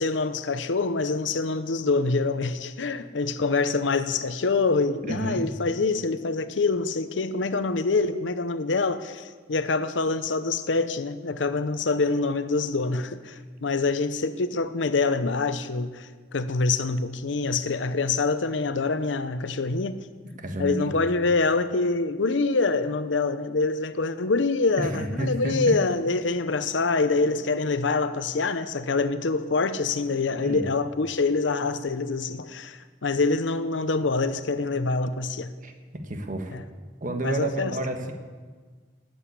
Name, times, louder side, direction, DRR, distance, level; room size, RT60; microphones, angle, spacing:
voice 1, 0.0-20.1 20.6-35.5 36.5-36.6 37.2-37.8, left 3 dB, 85° left, 0.7 m, -25 dB
voice 2, 5.0-5.4 20.4-20.9 24.8-25.7 30.4-30.6 35.6-38.1, right 1 dB, 45° right, 1.6 m, -30 dB
19.0 x 7.9 x 8.4 m
head